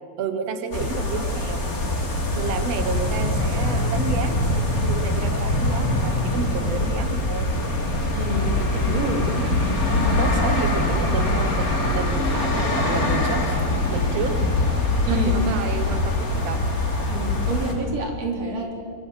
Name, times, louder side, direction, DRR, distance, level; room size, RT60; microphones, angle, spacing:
voice 1, 0.2-1.6 2.3-7.5 9.3-9.6 10.2-13.6 13.9-14.4 15.1-16.6, right 6 dB, 65° right, 8 dB, 1.6 m, -31 dB
sound 1, 0.7-17.7, left 2 dB, 25° left, 3.1 m, -23 dB
voice 2, 8.1-9.3 15.1-15.3 17.1-18.8, right 2 dB, 40° right, 1 dB, 4.6 m, -28 dB
24.5 x 24.5 x 8.1 m, 2.1 s
omnidirectional pair, 4.7 m